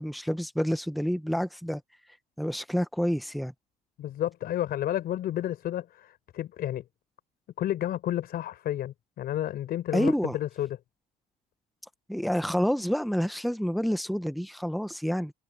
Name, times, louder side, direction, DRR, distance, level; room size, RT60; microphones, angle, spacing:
voice 1, 0.0-1.8 2.4-3.5 9.9-10.3 12.1-15.3, equal, ahead, 1.2 m, -28 dB
voice 2, 4.0-6.8 7.6-10.8, left 12 dB, 65° left, 4.6 m, -31 dB
cardioid pair, 110°, 17 cm